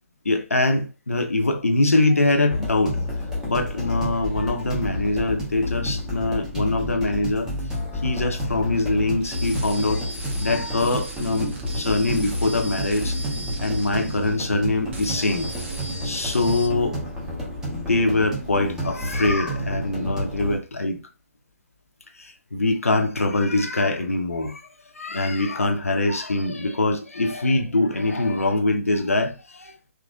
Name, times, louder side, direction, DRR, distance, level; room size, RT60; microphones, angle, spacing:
voice 1, 0.2-3.0 3.4-7.5 8.0-10.1 10.4-13.2 13.6-15.5 16.0-17.0 17.9-21.0 22.2-24.6 24.9-29.7, left 2 dB, 75° left, 0.7 m, -23 dB
sound 1, 2.5-20.6, left 1 dB, 5° right, 1.0 m, -30 dB
sound 2, 9.2-14.6 14.9-16.7, right 2 dB, 50° right, 1.2 m, -37 dB
3.7 x 3.0 x 2.4 m
figure-of-eight pair, 135°, 8 cm